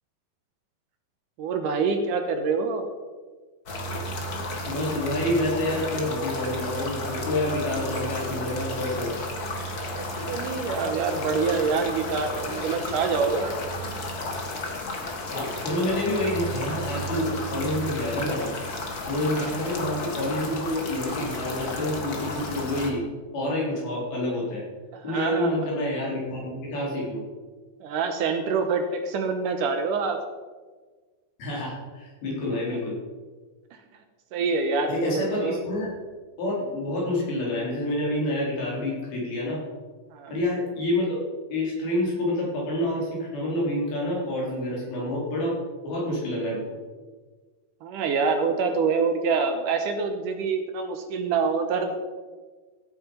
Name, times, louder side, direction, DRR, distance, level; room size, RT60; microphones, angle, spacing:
voice 1, 1.4-2.9 10.3-13.9 19.3-19.5 24.9-25.7 27.8-30.2 34.3-35.6 40.1-40.3 47.8-51.9, right 5 dB, 70° right, 6 dB, 2.3 m, -26 dB
sound 1, 3.7-22.9, left 1 dB, 45° left, 1.2 m, -33 dB
voice 2, 4.7-9.2 15.3-18.5 19.1-23.0 23.3-24.7 25.0-27.2 31.4-33.0 34.9-36.0 36.4-39.6 40.3-41.2 41.5-45.6 45.8-46.6, left 1 dB, 80° left, -4 dB, 6.0 m, -28 dB
15.0 x 8.7 x 5.4 m, 1.4 s
omnidirectional pair, 4.3 m